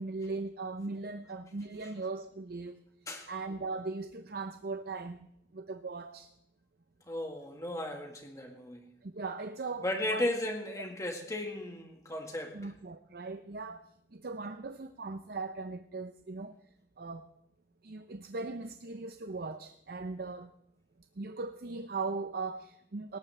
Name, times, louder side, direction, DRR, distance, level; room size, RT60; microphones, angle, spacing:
voice 1, 0.0-2.8 3.3-6.3 9.0-10.3 12.5-16.6 17.0-17.3 17.8-20.5 21.2-23.2, right 3 dB, 55° right, 9 dB, 0.6 m, -39 dB
voice 2, 7.1-8.9 9.8-12.6, left 1 dB, 20° left, 3 dB, 1.7 m, -35 dB
19.0 x 17.5 x 3.4 m, 0.75 s
head